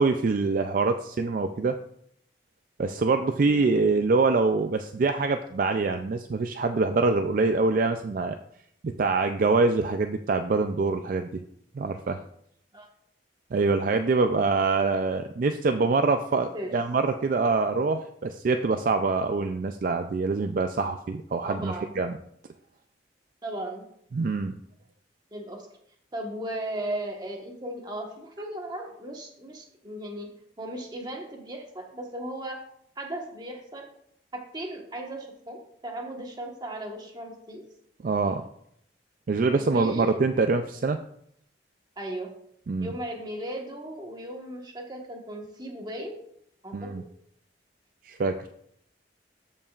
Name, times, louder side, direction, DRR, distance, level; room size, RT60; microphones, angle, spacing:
voice 1, 0.0-1.8 2.8-8.4 8.8-11.4 11.8-12.2 13.5-22.1 24.1-24.6 38.0-38.4 39.3-41.0 42.7-42.9 46.7-47.0 48.0-48.5, right 3 dB, 50° right, 7 dB, 0.4 m, -25 dB
voice 2, 21.4-21.9 23.4-23.8 25.3-25.7 26.1-30.3 30.6-32.6 33.0-33.9 34.3-37.6 39.5-40.2 42.0-42.3 42.8-46.2 46.6-46.9, right 1 dB, 25° right, 1 dB, 1.3 m, -36 dB
14.0 x 5.3 x 2.4 m, 0.70 s
head